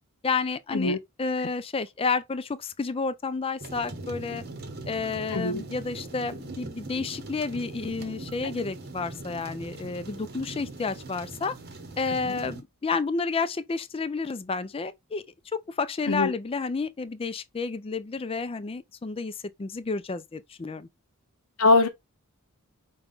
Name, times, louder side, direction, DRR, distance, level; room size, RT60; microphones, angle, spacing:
voice 1, 0.2-4.4 4.9-11.6 12.0-15.2 15.5-20.9, left 4 dB, 25° left, 0.4 m, -30 dB
sound 1, 3.6-12.6, right 2 dB, 50° right, 0.9 m, -41 dB
voice 2, 5.3-5.6 12.3-12.4 16.1-16.3 21.6-21.9, left 3 dB, 75° left, 0.8 m, -22 dB
5.4 x 2.3 x 3.6 m
head